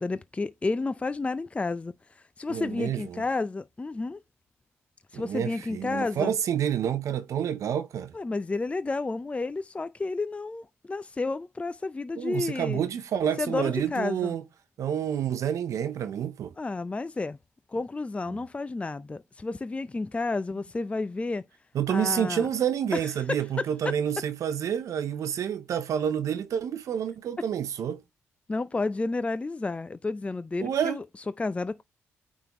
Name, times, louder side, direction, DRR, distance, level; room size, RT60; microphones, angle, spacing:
voice 1, 0.0-4.2 5.1-6.3 8.1-12.8 13.4-14.4 16.6-17.4 17.7-21.4 21.9-22.5 22.9-23.0 23.3-23.7 28.5-31.0 31.4-31.8, left 3 dB, 20° left, 0.4 m, -31 dB
voice 2, 2.5-3.2 5.1-8.1 12.2-14.4 14.8-16.5 21.7-28.0 30.6-31.0, right 9 dB, 70° right, 0.6 m, -29 dB
8.9 x 3.6 x 2.9 m
supercardioid pair, 55°, 6 cm